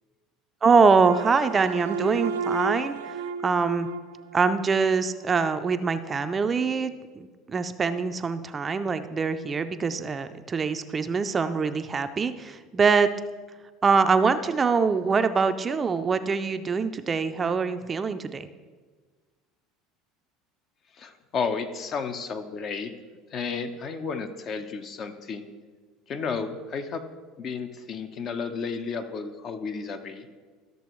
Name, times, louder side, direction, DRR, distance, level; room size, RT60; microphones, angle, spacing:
voice 1, 0.6-3.9 4.3-13.1 13.8-18.5, right 5 dB, 30° right, 10 dB, 0.5 m, -24 dB
sound 1, 1.0-5.3, right 5 dB, 90° right, 0.4 m, -33 dB
voice 2, 21.0-22.9 23.3-25.5 26.1-27.0 27.4-30.3, left 5 dB, 45° left, 7 dB, 0.9 m, -32 dB
13.0 x 6.7 x 3.1 m, 1.4 s
supercardioid pair, 90°, 0 cm